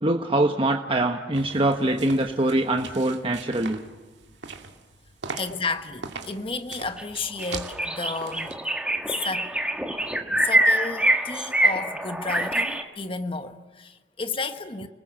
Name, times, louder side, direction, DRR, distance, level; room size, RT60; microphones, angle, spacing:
voice 1, 0.0-3.8 10.3-10.4, right 1 dB, 30° right, 1.2 m, -23 dB
sound 1, 1.3-8.6, right 4 dB, 75° right, 2.4 m, -40 dB
voice 2, 5.4-8.6 9.2-9.5 10.4-14.9, left 3 dB, 30° left, 1.3 m, -32 dB
sound 2, 7.0-7.1 7.4-12.8, right 1 dB, 5° right, 1.7 m, -25 dB
30.0 x 20.5 x 7.5 m
head